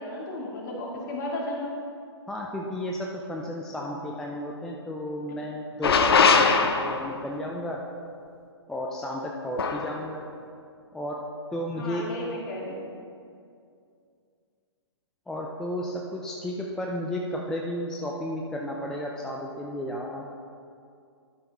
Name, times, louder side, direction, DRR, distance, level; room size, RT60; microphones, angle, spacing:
voice 1, 0.0-1.8 5.9-6.3 11.8-12.8, left 1 dB, 40° left, -2 dB, 1.9 m, -34 dB
voice 2, 2.3-6.1 6.8-7.8 8.7-10.2 10.9-11.2 11.5-12.0 15.3-20.2, equal, 5° left, -1 dB, 0.3 m, -33 dB
sound 1, 5.8-7.2 9.6-9.9, left 5 dB, 55° left, 0.7 m, -21 dB
11.5 x 5.7 x 4.0 m, 2.4 s
figure-of-eight pair, 125°, 15 cm